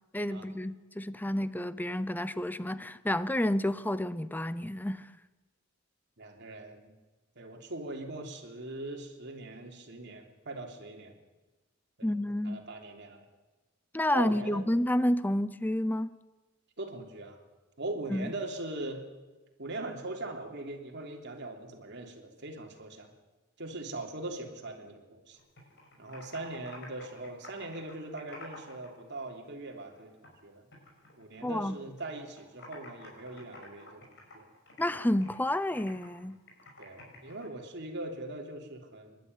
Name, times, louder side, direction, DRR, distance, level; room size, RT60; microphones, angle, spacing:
voice 1, 0.1-5.1 12.0-12.6 13.9-16.2 18.1-18.3 31.4-31.8 34.8-36.4, left 1 dB, 10° left, 0.7 m, -30 dB
voice 2, 6.2-6.9 7.3-11.1 12.0-12.1 12.4-13.2 14.1-14.6 16.8-17.4 17.8-19.0 19.6-23.1 23.6-25.4 26.0-30.6 31.2-34.1 34.3-34.5 36.8-39.2, right 2 dB, 60° right, 3.3 m, -41 dB
Computer keyboard, 25.3-28.9 29.2-30.4 30.7-32.0 32.3-37.5, left 2 dB, 60° left, 6.2 m, -50 dB
27.0 x 12.0 x 9.6 m
head